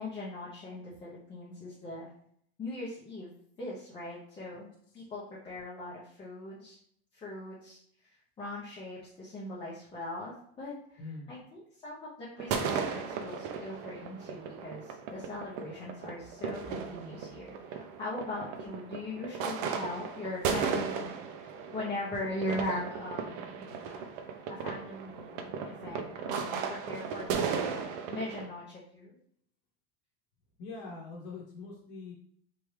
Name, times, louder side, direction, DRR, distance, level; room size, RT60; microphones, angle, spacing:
voice 1, 0.0-2.1 2.6-3.3 3.6-4.7 4.9-6.8 7.1-7.8 8.4-24.1 24.5-29.1, left 1 dB, 15° left, -8 dB, 0.6 m, -40 dB
voice 2, 11.0-11.3 30.6-32.1, left 3 dB, 55° left, -2 dB, 1.0 m, -43 dB
sound 1, 12.4-28.5, right 6 dB, 50° right, 0.5 m, -36 dB
3.5 x 3.2 x 3.1 m, 0.65 s
supercardioid pair, 170°, 33 cm